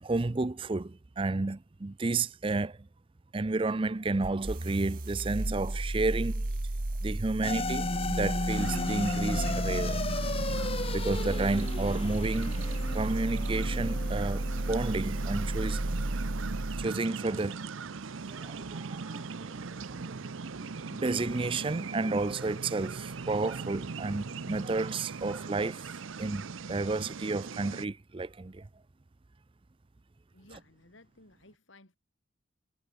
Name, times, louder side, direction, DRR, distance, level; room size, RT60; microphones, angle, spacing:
voice 1, 0.0-2.8 3.3-6.5 7.0-10.1 10.9-12.6 12.9-15.8 16.8-17.6 18.3-20.2 20.6-25.9 26.2-28.7, right 3 dB, 25° right, 0.5 m, -32 dB
sound 1, 4.2-16.9, right 1 dB, 45° right, 1.2 m, -33 dB
sound 2, 7.4-15.9, left 2 dB, 30° left, 0.9 m, -35 dB
sound 3, 8.5-27.9, right 4 dB, 80° right, 0.7 m, -40 dB
voice 2, 30.3-32.0, left 2 dB, 75° left, 4.3 m, -57 dB
head